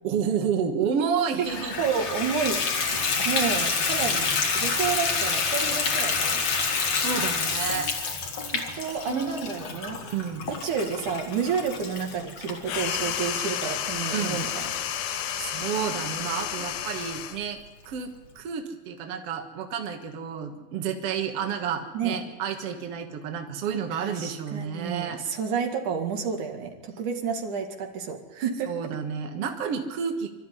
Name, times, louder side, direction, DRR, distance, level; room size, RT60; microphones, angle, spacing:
voice 1, 0.0-1.8 7.0-7.9 9.1-10.5 14.1-14.4 15.4-17.6 17.9-25.2 28.7-30.3, right 7 dB, 55° right, 4 dB, 2.4 m, -30 dB
Water tap faucet / Bathtub (filling or washing), 1.4-15.8 16.4-16.5 17.0-17.1 17.4-17.5, left 5 dB, 55° left, 3.1 m, -28 dB
voice 2, 1.8-6.4 8.5-10.0 10.5-14.7 21.9-22.2 23.9-28.7, right 6 dB, 80° right, 3 dB, 3.5 m, -30 dB
sound 1, 12.6-17.4, left 10 dB, 80° left, 2.5 m, -31 dB
25.5 x 13.0 x 9.8 m, 1.2 s
omnidirectional pair, 3.5 m